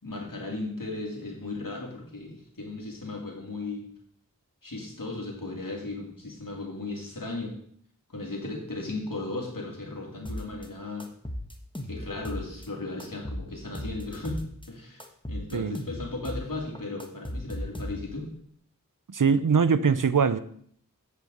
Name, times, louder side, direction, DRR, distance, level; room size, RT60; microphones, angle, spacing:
voice 1, 0.0-3.9 4.6-7.6 8.1-11.1 11.9-14.4 14.7-18.3, left 2 dB, 75° left, -1 dB, 2.9 m, -36 dB
sound 1, 10.3-10.7 11.0-12.7 13.0-14.7 15.0-16.5 16.8-18.3, equal, 15° left, 1.3 m, -37 dB
voice 2, 19.1-20.4, right 6 dB, 70° right, 14 dB, 0.7 m, -22 dB
8.4 x 6.7 x 6.5 m, 0.63 s
wide cardioid pair, 40°, 34 cm